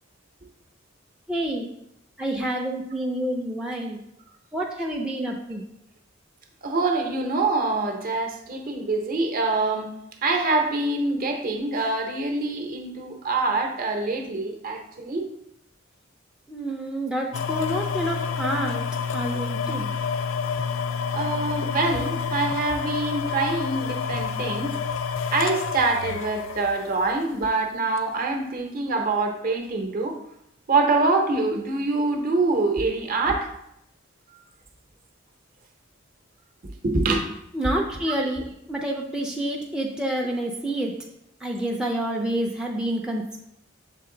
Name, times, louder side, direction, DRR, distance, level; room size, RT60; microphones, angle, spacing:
voice 1, 1.3-1.7 2.2-4.0 4.5-5.6 16.5-18.8 19.1-19.9 37.5-40.9 41.4-43.4, right 1 dB, 5° right, -1 dB, 0.4 m, -28 dB
voice 2, 6.6-9.9 10.2-15.3 21.1-24.7 25.3-30.1 30.7-33.5 36.8-37.3 38.1-38.2, right 3 dB, 45° right, 3 dB, 0.8 m, -25 dB
sound 1, 17.3-27.4 28.0-28.1, left 6 dB, 75° left, 0.4 m, -29 dB
6.7 x 3.8 x 3.8 m, 0.78 s
head